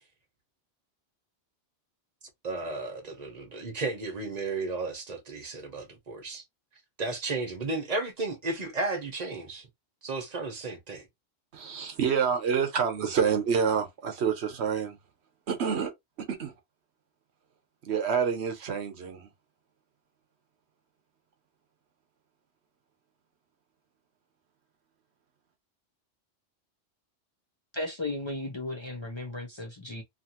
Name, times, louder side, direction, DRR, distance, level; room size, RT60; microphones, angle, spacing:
voice 1, 2.4-6.4 7.0-9.7 10.0-11.1, right 3 dB, 40° right, 0.8 m, -33 dB
voice 2, 11.5-15.0 15.5-15.9 16.3-16.5 17.8-19.3, right 7 dB, 75° right, 1.0 m, -27 dB
voice 3, 27.7-30.0, left 2 dB, 30° left, 0.6 m, -35 dB
2.8 x 2.5 x 2.8 m
omnidirectional pair, 1.2 m